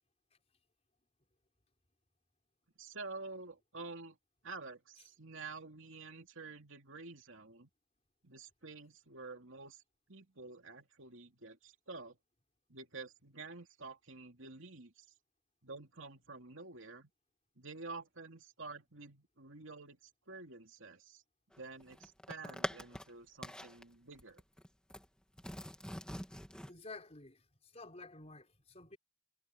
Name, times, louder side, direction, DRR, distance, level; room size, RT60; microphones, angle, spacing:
voice 1, 2.8-4.2 4.4-7.7 8.2-9.8 10.1-12.2 12.7-15.1 15.6-17.1 17.6-21.2 21.6-24.4, right 3 dB, 65° right, 2.8 m, -49 dB
sound 1, 21.5-23.1 23.4-23.8 24.2-25.1 25.4-26.7, equal, 5° left, 2.7 m, -44 dB
voice 2, 26.7-29.0, left 3 dB, 30° left, 4.8 m, -51 dB
head